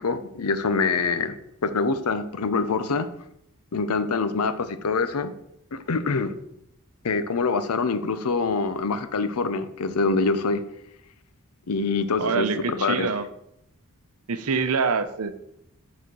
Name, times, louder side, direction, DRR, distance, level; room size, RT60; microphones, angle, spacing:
voice 1, 0.0-1.3 1.6-3.1 3.7-5.3 5.7-6.3 7.0-10.6 11.7-13.1, left 4 dB, 85° left, 11 dB, 0.6 m, -25 dB
voice 2, 12.2-13.3 14.3-15.4, right 5 dB, 75° right, 11 dB, 0.7 m, -25 dB
6.9 x 4.2 x 6.2 m, 0.78 s
head